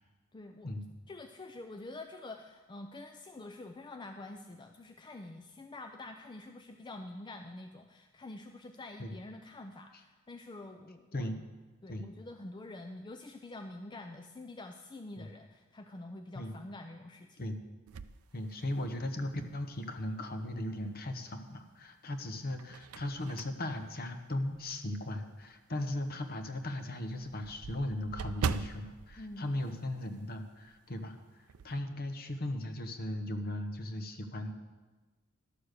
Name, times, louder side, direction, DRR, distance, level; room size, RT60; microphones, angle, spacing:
voice 1, 0.3-0.7 1.1-11.3 11.8-17.4 29.2-29.8, left 2 dB, 20° left, 5 dB, 0.4 m, -47 dB
sound 1, 17.9-19.2 19.7-19.8 21.3-21.8 22.3-24.9 25.4-25.5 25.9-26.0 26.3-26.4 26.6-30.4 30.6-30.9 31.2-31.8, right 5 dB, 90° right, 0.5 m, -41 dB
voice 2, 18.3-31.2 31.6-34.5, left 1 dB, 45° left, 7 dB, 1.0 m, -37 dB
12.0 x 7.0 x 6.6 m, 1.3 s
head